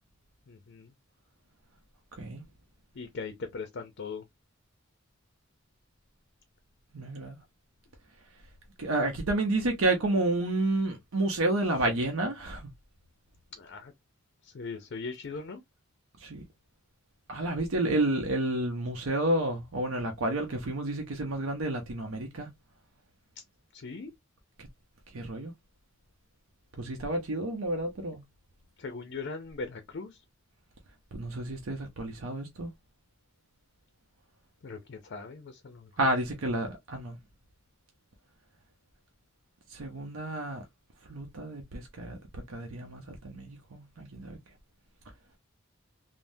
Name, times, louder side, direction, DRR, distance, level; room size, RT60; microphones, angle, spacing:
voice 1, 0.5-0.9 2.9-4.2 13.5-13.9 14.4-15.6 23.4-23.5 23.7-24.1 28.8-30.2 34.6-36.1, left 4 dB, 55° left, 0.5 m, -40 dB
voice 2, 6.9-7.4 8.8-12.7 16.2-16.4 17.3-22.5 24.6-24.7 25.1-25.5 26.8-28.2 31.1-32.7 36.0-37.2 39.7-40.6 41.1-44.4, right 2 dB, 85° right, 0.7 m, -30 dB
3.4 x 2.1 x 2.6 m
head